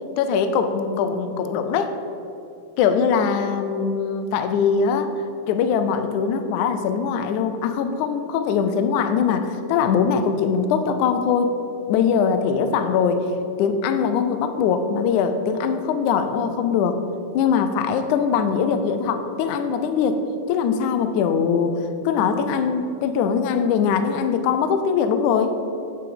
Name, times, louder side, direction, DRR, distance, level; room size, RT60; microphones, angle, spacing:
voice 1, 0.2-2.0 2.8-5.1 5.5-11.6 11.9-13.3 13.6-17.0 17.3-21.8 22.0-25.6, left 6 dB, 75° left, 8 dB, 1.8 m, -21 dB
8.8 x 8.0 x 7.8 m, 2.7 s
omnidirectional pair, 4.3 m